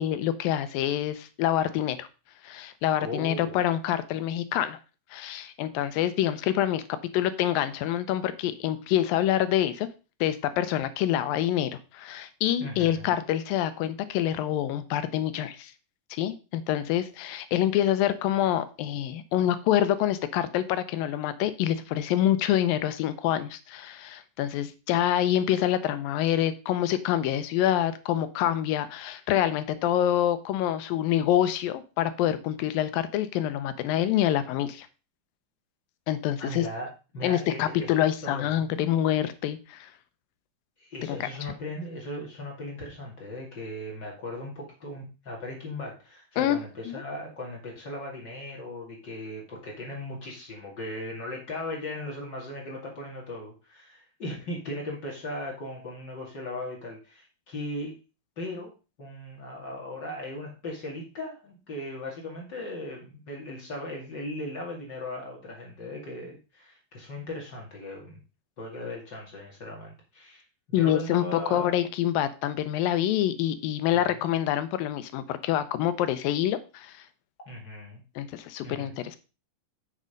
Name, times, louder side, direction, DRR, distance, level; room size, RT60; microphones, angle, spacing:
voice 1, 0.0-2.1 2.4-4.8 5.1-9.9 10.2-15.7 16.1-34.9 36.1-36.7 37.2-39.9 41.1-41.3 46.4-46.6 46.9-47.0 70.7-77.0 78.2-79.2, left 11 dB, 80° left, 12 dB, 2.5 m, -26 dB
voice 2, 3.0-3.6 12.6-13.1 36.4-38.9 40.8-57.9 58.4-58.7 59.0-68.2 68.6-70.4 70.7-71.8 73.9-74.0 77.5-78.0 78.6-79.0, left 1 dB, 35° left, -2 dB, 2.6 m, -38 dB
7.4 x 6.6 x 5.1 m, 0.32 s
omnidirectional pair, 4.1 m